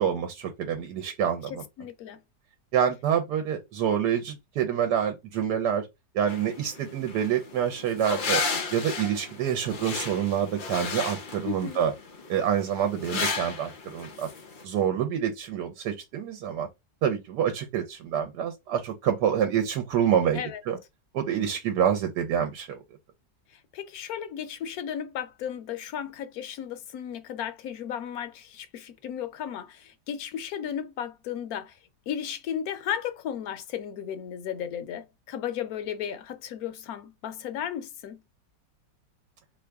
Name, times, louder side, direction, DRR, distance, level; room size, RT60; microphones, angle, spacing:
voice 1, 0.0-1.6 2.7-5.9 6.1-8.4 8.7-11.9 12.3-14.3 14.6-16.7 17.0-20.8 21.1-22.8, right 9 dB, 70° right, 1.2 m, -27 dB
voice 2, 1.5-2.2 11.4-11.8 20.3-20.6 23.7-31.8 32.1-38.2, left 9 dB, 65° left, 1.0 m, -35 dB
sound 1, 6.3-14.6, left 4 dB, 85° left, 0.4 m, -34 dB
3.6 x 3.1 x 3.4 m
omnidirectional pair, 1.9 m